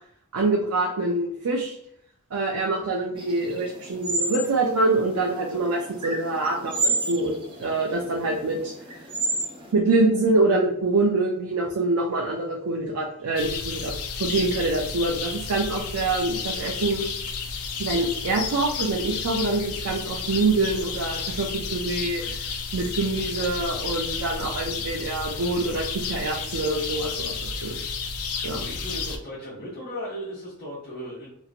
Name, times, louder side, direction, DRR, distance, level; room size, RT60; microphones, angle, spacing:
voice 1, 0.3-1.8 2.3-8.7 9.7-17.0 17.8-22.5 22.7-27.3 27.6-27.8 28.4-28.6, right 2 dB, 90° right, -1 dB, 0.5 m, -25 dB
sound 1, 3.2-9.7, right 2 dB, 25° right, 0.4 m, -31 dB
sound 2, 13.4-29.2, left 5 dB, 85° left, 0.4 m, -32 dB
voice 2, 28.6-31.3, equal, 40° left, -9 dB, 1.0 m, -36 dB
2.9 x 2.6 x 2.5 m, 0.73 s
head